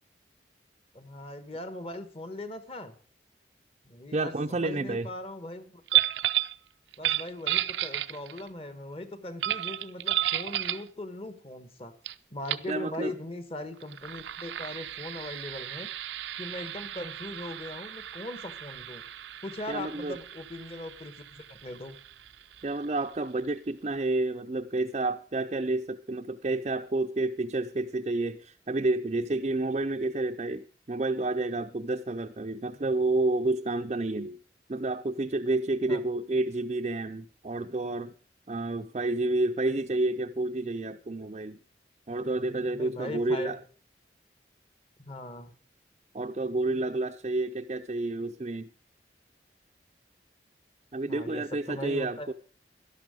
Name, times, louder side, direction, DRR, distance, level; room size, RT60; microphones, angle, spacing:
voice 1, 0.9-3.0 3.8-5.8 7.0-11.9 12.3-15.9 16.4-19.0 19.4-22.0 35.9-36.0 42.7-43.6 45.0-45.5 51.1-52.3, left 1 dB, 35° left, 1.2 m, -40 dB
voice 2, 4.1-5.1 12.7-13.1 19.7-20.2 22.6-34.4 34.7-38.1 38.5-41.6 42.1-43.6 46.1-48.7 50.9-52.3, right 2 dB, 35° right, 0.5 m, -30 dB
sound 1, 5.9-6.6 6.9-8.5 9.4-10.9 12.0-12.1 12.4-12.7 13.8-23.1, right 13 dB, 90° right, 0.6 m, -33 dB
12.0 x 11.5 x 5.0 m
head